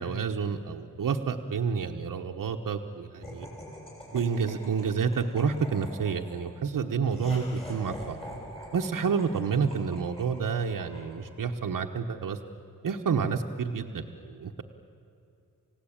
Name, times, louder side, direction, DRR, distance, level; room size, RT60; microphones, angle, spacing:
voice 1, 0.0-3.5 4.1-8.2 8.7-12.4 12.8-14.6, right 6 dB, 75° right, 3 dB, 1.2 m, -29 dB
Laughter, 3.2-11.6, equal, 15° left, 6.5 m, -45 dB
29.0 x 16.5 x 8.8 m, 2.6 s
wide cardioid pair, 140°, 33 cm